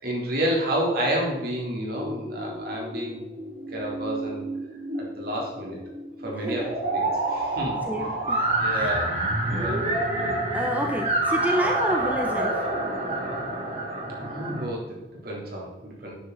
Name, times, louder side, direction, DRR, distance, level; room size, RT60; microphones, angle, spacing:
voice 1, 0.0-3.2 3.7-4.4 4.9-5.8 6.2-7.8 8.6-9.2 9.5-9.8 14.1-16.1, right 1 dB, 60° right, -2 dB, 3.9 m, -30 dB
sound 1, 1.9-14.6, right 2 dB, 40° right, 3.1 m, -28 dB
voice 2, 6.3-6.7 7.9-8.5 10.5-12.7, equal, 10° right, 1 dB, 1.0 m, -29 dB
12.0 x 9.8 x 4.2 m, 1.0 s
head